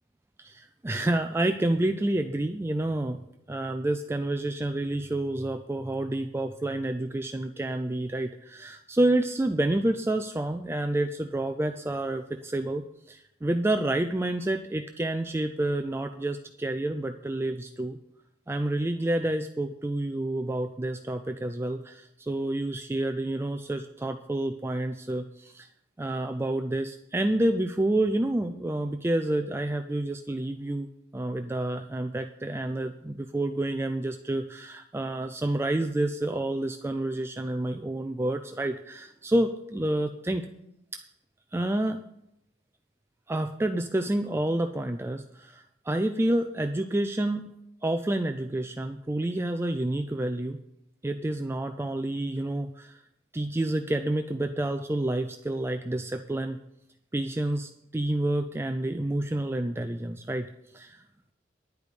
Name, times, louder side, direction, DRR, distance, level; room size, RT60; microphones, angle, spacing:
voice 1, 0.4-3.2 3.5-18.0 18.5-25.7 26.0-30.9 31.1-40.5 41.5-42.0 43.3-47.5 47.8-50.6 51.0-53.0 53.3-56.6 57.1-60.5 60.7-61.0, right 1 dB, 15° right, 7 dB, 0.3 m, -29 dB
10.5 x 5.2 x 8.1 m, 0.81 s
head